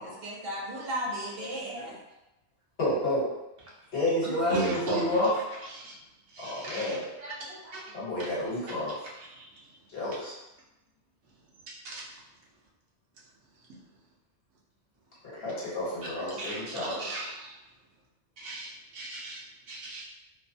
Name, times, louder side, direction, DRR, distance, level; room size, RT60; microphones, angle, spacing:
voice 1, 0.0-2.0 7.2-8.0, equal, 60° right, -3 dB, 0.8 m, -37 dB
voice 2, 1.4-1.9 2.8-3.3 3.9-5.3 6.4-7.0 7.9-9.0 9.9-10.3 15.3-17.0, left 1 dB, 60° left, -8 dB, 1.3 m, -30 dB
voice 3, 4.5-5.3 5.6-5.9 6.3-7.0 7.3-7.4 7.7-7.8 9.3-9.4 11.8-12.1 13.7-13.8 16.0-16.1 16.4-17.5 18.4-20.0, right 2 dB, 85° right, -4 dB, 1.1 m, -36 dB
3.0 x 2.0 x 2.6 m, 0.95 s
omnidirectional pair, 1.2 m